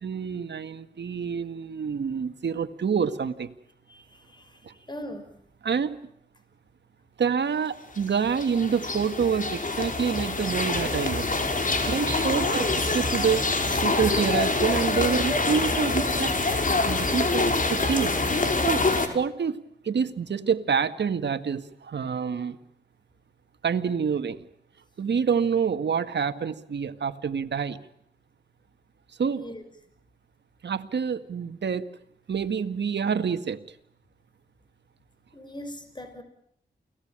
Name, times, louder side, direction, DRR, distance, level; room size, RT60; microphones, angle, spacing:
voice 1, 0.0-3.5 4.6-4.7 5.6-6.0 7.2-11.3 11.9-13.6 13.8-16.3 16.9-18.8 19.1-19.6 19.8-22.6 23.6-24.5 25.0-27.8 29.2-29.4 30.6-31.9 32.3-33.6, right 6 dB, 75° right, 9 dB, 1.9 m, -27 dB
voice 2, 4.9-5.2 13.7-13.9 29.2-29.6 35.3-36.2, left 1 dB, 25° left, 9 dB, 5.6 m, -39 dB
sound 1, 8.0-19.1, left 3 dB, 50° left, 5.1 m, -25 dB
29.5 x 19.5 x 8.9 m, 0.73 s
cardioid pair, 60°, 18 cm